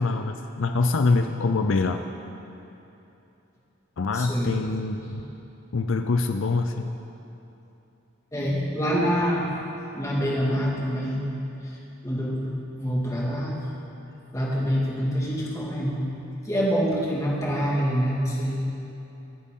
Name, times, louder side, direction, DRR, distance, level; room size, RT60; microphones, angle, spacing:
voice 1, 0.0-2.0 4.0-5.2 5.7-6.9, left 3 dB, 75° left, 6 dB, 0.5 m, -24 dB
voice 2, 4.1-4.6 5.1-5.2 8.3-9.5 9.9-11.3 11.6-11.8 12.0-13.7 14.3-18.6, equal, 15° left, -4 dB, 2.1 m, -26 dB
24.5 x 8.3 x 3.8 m, 2.9 s
head